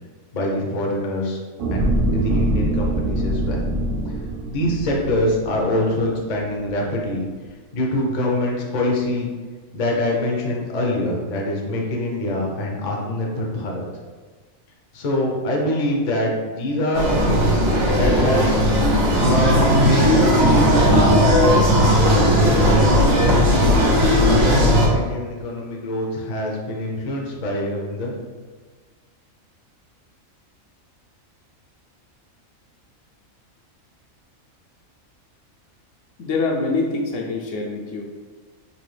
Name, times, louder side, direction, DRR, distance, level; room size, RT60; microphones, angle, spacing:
voice 1, 0.3-1.4 1.7-1.9 2.1-3.6 4.5-7.3 7.7-9.3 9.7-13.8 14.9-17.7 17.9-18.6 19.2-21.4 22.0-23.9 24.2-28.1, left 1 dB, 45° left, -1 dB, 0.6 m, -24 dB
sound 1, 1.6-6.1 6.6-6.7, right 1 dB, 65° right, 0.5 m, -24 dB
sound 2, 16.9-24.9, equal, 80° right, 1.3 m, -16 dB
voice 2, 36.2-38.0, left 3 dB, 70° left, 0 dB, 0.9 m, -24 dB
4.0 x 2.7 x 3.1 m, 1.4 s
omnidirectional pair, 1.4 m